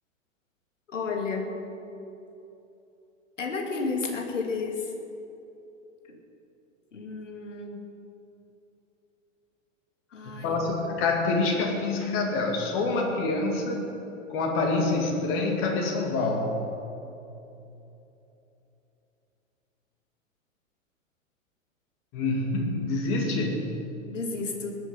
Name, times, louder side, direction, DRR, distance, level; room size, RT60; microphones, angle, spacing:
voice 1, 0.9-1.5 3.4-4.9 6.1-6.2 6.9-7.8 10.1-10.6 24.1-24.8, left 4 dB, 65° left, 2 dB, 2.7 m, -32 dB
voice 2, 10.3-13.8 14.3-16.6 22.1-23.8, left 3 dB, 30° left, 1 dB, 2.4 m, -26 dB
20.0 x 10.5 x 5.7 m, 2.9 s
figure-of-eight pair, 105°, 40 cm